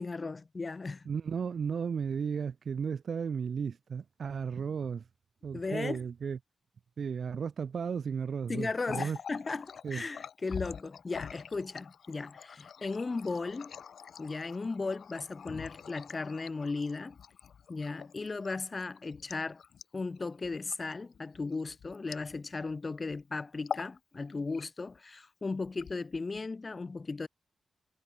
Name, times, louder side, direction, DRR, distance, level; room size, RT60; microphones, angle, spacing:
voice 1, 0.0-1.1 5.5-6.0 8.5-13.7 14.2-17.1 17.7-19.6 19.9-27.3, left 3 dB, 35° left, 4.0 m, -36 dB
voice 2, 1.0-5.1 5.4-6.4 7.0-9.2 9.8-10.0, right 6 dB, 60° right, 5.1 m, -34 dB
Water tap faucet, 8.7-22.7 23.0-23.2 23.6-24.0 24.3-25.0 25.6-26.4, left 7 dB, 75° left, 6.3 m, -45 dB
wide cardioid pair, 110°, 0 cm